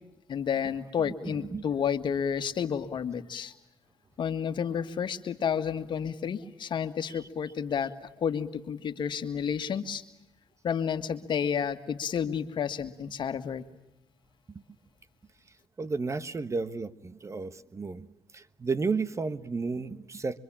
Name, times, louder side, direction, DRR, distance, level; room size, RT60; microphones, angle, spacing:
voice 1, 0.3-3.5 4.2-10.0 10.6-13.6, left 7 dB, 60° left, 9 dB, 1.8 m, -31 dB
voice 2, 1.0-1.6 14.5-14.6 15.8-18.1 18.3-20.4, right 4 dB, 35° right, 14 dB, 1.3 m, -33 dB
25.0 x 24.5 x 8.8 m, 0.87 s
cardioid pair, 70°, 9 cm